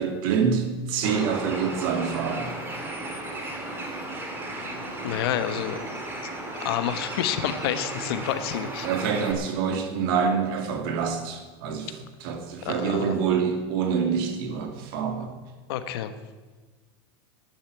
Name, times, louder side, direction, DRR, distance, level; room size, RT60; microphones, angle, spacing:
voice 1, 0.0-2.5 8.8-15.3, right 6 dB, 60° right, 6 dB, 2.3 m, -26 dB
Bird, 1.0-9.3, right 2 dB, 15° right, 2.5 m, -35 dB
voice 2, 5.0-5.8 6.5-8.9 12.6-13.1 15.7-16.1, left 11 dB, 70° left, 11 dB, 1.2 m, -29 dB
11.0 x 10.0 x 8.2 m, 1.3 s
supercardioid pair, 145°, 13 cm